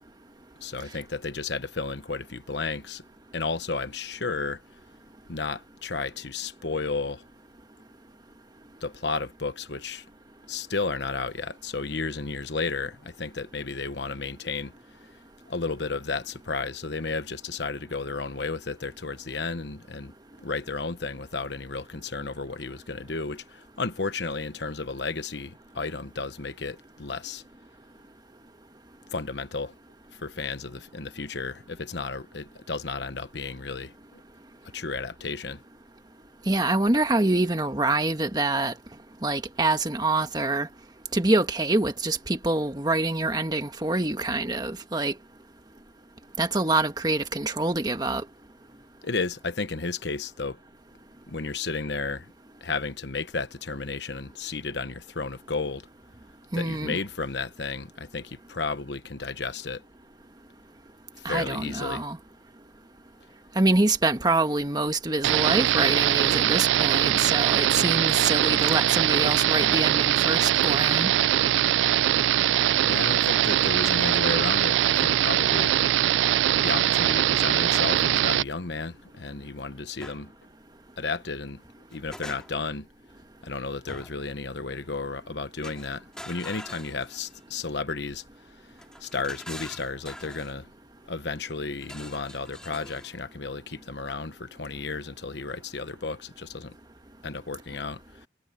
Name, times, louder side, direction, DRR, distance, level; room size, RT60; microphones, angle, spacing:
voice 1, 0.6-3.0 3.3-4.6 5.3-7.2 8.8-10.0 10.5-14.7 15.5-20.1 20.4-27.4 29.1-29.7 30.1-34.2 34.7-35.6 49.0-50.6 51.3-52.3 52.6-55.9 56.6-59.8 61.2-62.0 72.7-75.7 76.6-80.3 81.0-81.6 81.9-82.9 83.4-88.2 89.0-90.7 91.1-96.7 97.2-98.3, left 4 dB, 70° left, 1.1 m, -33 dB
voice 2, 36.5-38.7 39.2-40.7 41.1-45.1 46.4-48.2 56.5-57.0 61.2-62.2 63.5-71.1, right 2 dB, 20° right, 1.5 m, -25 dB
sound 1, 65.2-78.4, right 12 dB, 85° right, 0.3 m, -22 dB
sound 2, 80.0-80.2 81.6-82.8 83.9-84.3 85.6-87.5 88.8-90.6 91.8-93.1, left 1 dB, 5° left, 3.8 m, -44 dB
head